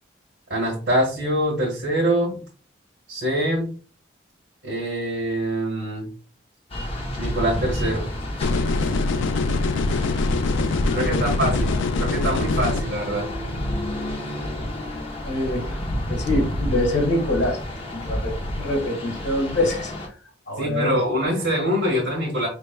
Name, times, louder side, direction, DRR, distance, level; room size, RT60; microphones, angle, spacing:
voice 1, 0.5-2.4 3.1-3.7 4.6-6.1 7.2-8.1 10.9-13.3 20.6-22.5, right 1 dB, 75° right, -4 dB, 1.5 m, -24 dB
sound 1, 6.7-20.1, equal, 30° left, 0.7 m, -29 dB
sound 2, 8.4-12.8, left 3 dB, 85° left, 0.4 m, -23 dB
voice 2, 15.2-15.8 16.1-17.6 17.9-20.1 20.5-21.0, left 1 dB, 60° left, 1 dB, 1.5 m, -25 dB
4.8 x 3.3 x 2.2 m, 0.39 s
head